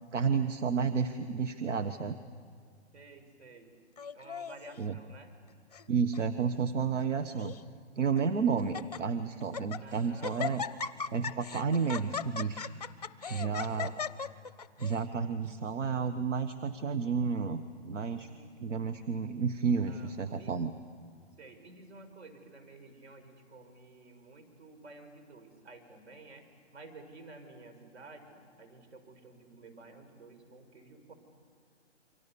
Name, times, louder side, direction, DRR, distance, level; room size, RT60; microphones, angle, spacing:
voice 1, 0.1-2.2 4.8-5.0 5.9-7.5 7.9-10.6 11.1-12.7 13.3-14.0 14.8-18.3 18.6-20.7, right 6 dB, 85° right, 10 dB, 1.3 m, -31 dB
voice 2, 2.9-3.7 4.1-5.3 9.8-10.3 13.3-14.0 18.0-18.5 19.9-20.5 21.4-31.1, right 3 dB, 70° right, 8 dB, 5.0 m, -52 dB
Laughter, 4.0-4.8 5.5-5.9 6.1-6.2 7.0-7.6 8.2-8.3 8.6-9.0 9.4-9.8 10.2-15.0, left 6 dB, 35° left, 0.5 m, -38 dB
28.5 x 24.5 x 7.0 m, 2.2 s
hypercardioid pair, 180°, 36 cm